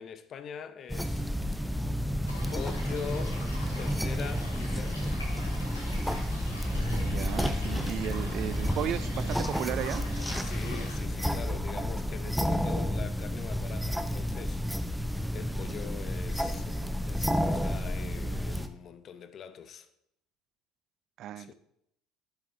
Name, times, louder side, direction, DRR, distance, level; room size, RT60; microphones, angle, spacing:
voice 1, 0.0-1.8 2.5-3.4 3.8-5.2 10.4-14.9 15.3-19.9 21.4-21.5, left 7 dB, 45° left, 0.8 m, -43 dB
sound 1, 0.9-18.7, equal, ahead, 0.8 m, -31 dB
sound 2, 2.3-11.0, left 1 dB, 90° left, 3.1 m, -45 dB
voice 2, 6.9-10.0 21.2-21.5, right 12 dB, 55° right, 0.4 m, -35 dB
11.5 x 8.2 x 3.3 m
figure-of-eight pair, 60°, 0 cm